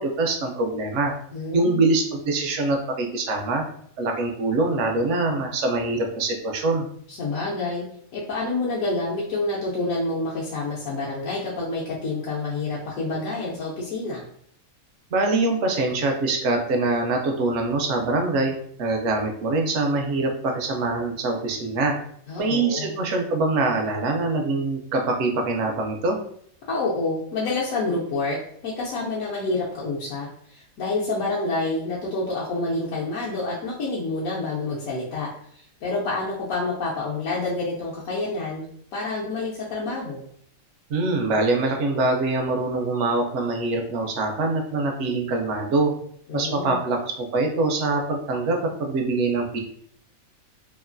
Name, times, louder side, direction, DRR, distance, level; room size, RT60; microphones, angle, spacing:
voice 1, 0.0-1.1 1.5-3.6 4.0-6.9 15.1-21.9 22.4-26.2 40.9-45.9 46.3-49.6, right 2 dB, 65° right, 2 dB, 0.8 m, -24 dB
voice 2, 1.3-1.8 7.1-7.8 8.1-14.3 22.3-22.9 26.7-28.4 28.6-40.2 46.3-46.8, left 2 dB, 75° left, -6 dB, 1.0 m, -28 dB
3.0 x 2.4 x 2.5 m, 0.66 s
omnidirectional pair, 1.5 m